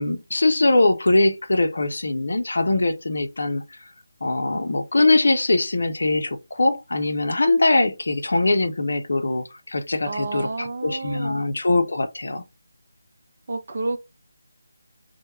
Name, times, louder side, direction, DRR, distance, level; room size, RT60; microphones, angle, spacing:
voice 1, 0.0-3.8 4.2-12.4, left 2 dB, 65° left, 0.5 m, -22 dB
voice 2, 10.1-11.5 13.5-14.0, right 3 dB, 50° right, 0.6 m, -30 dB
2.1 x 2.1 x 3.0 m
figure-of-eight pair, 160°, 0 cm